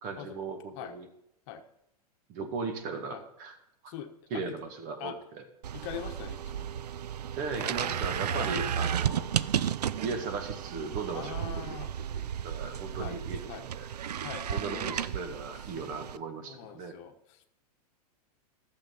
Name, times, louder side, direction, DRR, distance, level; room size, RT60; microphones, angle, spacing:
voice 1, 0.0-1.1 2.3-3.6 4.3-5.4 7.4-9.3 10.0-13.9 14.5-16.9, right 4 dB, 45° right, 5 dB, 2.0 m, -37 dB
voice 2, 3.9-4.6 5.0-5.2 5.7-6.9 8.3-8.5 11.1-11.9 13.0-13.2 13.5-13.7 14.2-15.0 16.4-17.6, left 10 dB, 50° left, 7 dB, 1.1 m, -42 dB
sound 1, 5.6-16.2, right 9 dB, 85° right, 0.4 m, -33 dB
11.5 x 7.5 x 5.5 m, 0.81 s
hypercardioid pair, 105°, 20 cm